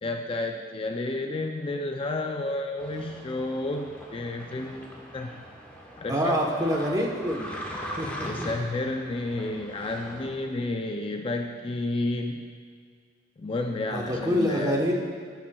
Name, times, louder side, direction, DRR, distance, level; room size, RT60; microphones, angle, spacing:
voice 1, 0.0-5.4 6.0-6.7 7.7-12.5 13.4-14.7, left 2 dB, 30° left, 4 dB, 0.4 m, -31 dB
sound 1, 2.8-10.4, equal, 10° left, 1.1 m, -41 dB
voice 2, 6.1-7.5 8.0-8.5 13.9-14.9, equal, 20° right, -1 dB, 1.0 m, -26 dB
13.0 x 8.7 x 2.3 m, 2.1 s
head